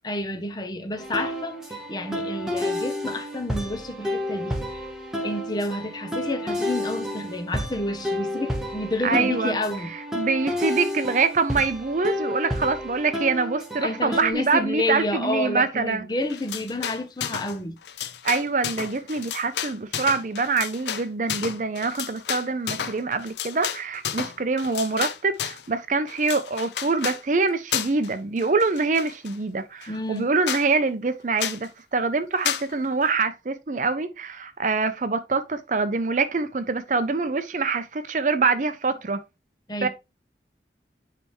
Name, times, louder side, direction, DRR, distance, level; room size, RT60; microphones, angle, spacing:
voice 1, 0.0-4.8 5.2-9.9 13.8-17.8 29.9-30.3 39.7-39.9, left 1 dB, 25° left, 0.7 m, -30 dB
sound 1, 1.0-14.3, left 1 dB, 5° right, 1.2 m, -30 dB
voice 2, 9.0-9.6 10.1-16.0 18.2-39.2 39.8-39.9, right 4 dB, 45° right, 0.5 m, -25 dB
sound 2, 16.3-17.6 17.8-25.7 26.1-27.2 27.7-28.1 28.4-29.4 29.8-29.9 30.2-30.3 30.5-30.7 31.4-31.7 32.4-32.7, left 9 dB, 75° left, 0.6 m, -31 dB
9.9 x 3.4 x 3.1 m
head